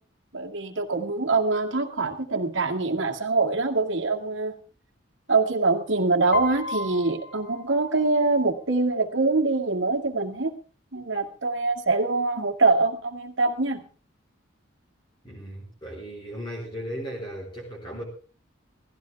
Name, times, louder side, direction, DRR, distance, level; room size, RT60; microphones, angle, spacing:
voice 1, 0.3-4.5 5.3-10.5 10.9-13.8, right 3 dB, 65° right, 3 dB, 2.1 m, -24 dB
Piano, 6.3-8.4, left 3 dB, 50° left, 1.9 m, -33 dB
voice 2, 15.2-18.0, equal, 25° left, -2 dB, 4.2 m, -36 dB
18.0 x 15.5 x 3.5 m, 0.38 s
head